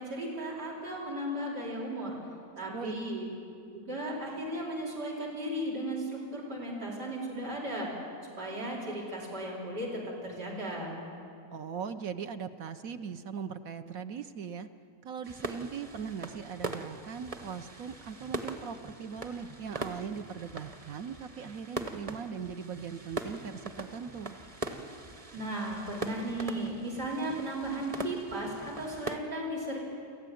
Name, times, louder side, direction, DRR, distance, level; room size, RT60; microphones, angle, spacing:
voice 1, 0.0-2.2 2.6-3.3 3.7-7.9 8.4-10.9 25.3-29.8, right 1 dB, 90° right, -3 dB, 5.0 m, -35 dB
voice 2, 11.5-14.7 15.0-24.4, right 6 dB, 65° right, 9 dB, 1.1 m, -39 dB
sound 1, 15.2-29.2, right 2 dB, 25° right, 1.1 m, -41 dB
29.5 x 14.5 x 9.3 m, 2.5 s
omnidirectional pair, 1.7 m